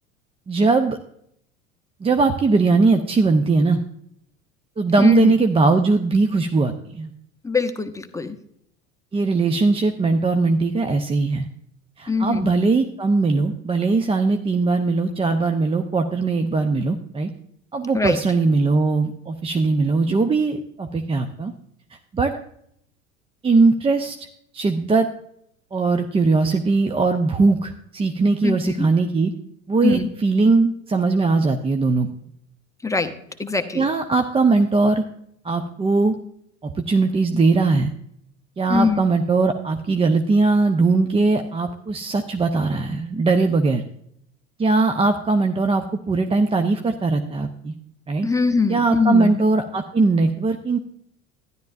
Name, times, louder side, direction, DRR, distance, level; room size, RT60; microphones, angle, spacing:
voice 1, 0.5-1.0 2.0-3.8 4.8-7.1 9.1-11.5 12.0-17.3 17.7-21.5 22.1-22.3 23.4-24.3 24.5-25.1 25.7-29.3 29.7-32.1 33.7-35.0 35.4-36.2 36.6-37.9 38.6-43.8 44.6-47.7 48.1-48.3 48.7-50.8, right 3 dB, 15° right, 7 dB, 0.6 m, -20 dB
voice 2, 5.0-5.3 7.4-8.4 12.1-12.5 17.9-18.2 28.4-28.9 29.8-30.1 32.8-33.1 33.4-33.8 38.7-39.0 48.2-49.3, left 4 dB, 10° left, 7 dB, 0.9 m, -22 dB
12.5 x 11.0 x 2.6 m, 0.71 s
figure-of-eight pair, 75°, 40 cm